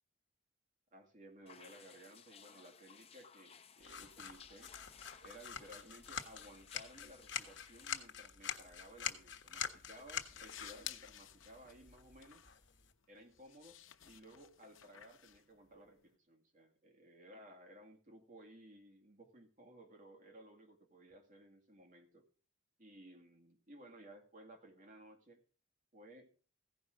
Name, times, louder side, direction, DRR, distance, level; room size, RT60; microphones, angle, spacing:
voice 1, 0.9-4.8 5.2-12.4 13.1-13.8 14.0-22.3 22.8-25.4 25.9-26.3, right 1 dB, 40° right, 3 dB, 2.2 m, -58 dB
sound 1, 1.5-8.1, left 7 dB, 30° left, 0.7 m, -60 dB
sound 2, 3.8-12.9, left 8 dB, 65° left, 1.3 m, -46 dB
sound 3, 9.3-16.1, left 11 dB, 90° left, 0.8 m, -55 dB
15.5 x 5.5 x 6.4 m, 0.39 s
head